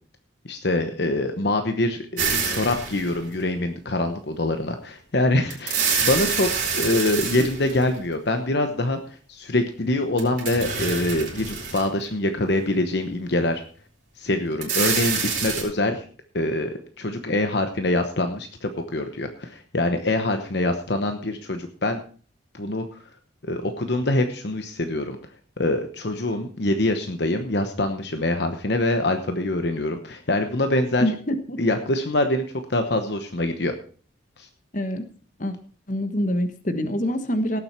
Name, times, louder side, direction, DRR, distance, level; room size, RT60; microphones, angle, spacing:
voice 1, 0.4-13.6 14.2-16.0 16.3-22.0 22.5-23.0 23.4-25.2 25.6-31.0 31.6-32.4 32.7-33.7 34.4-34.5, left 1 dB, 55° left, 7 dB, 1.0 m, -24 dB
sound 1, 2.2-3.4 5.5-8.1 10.2-12.0 12.6-12.7 14.5-15.6, right 6 dB, 40° right, 4.4 m, -26 dB
voice 2, 31.0-31.6 34.7-35.0 35.4-35.5 35.9-37.6, equal, 40° left, 9 dB, 1.3 m, -25 dB
18.0 x 7.8 x 4.4 m, 0.42 s
head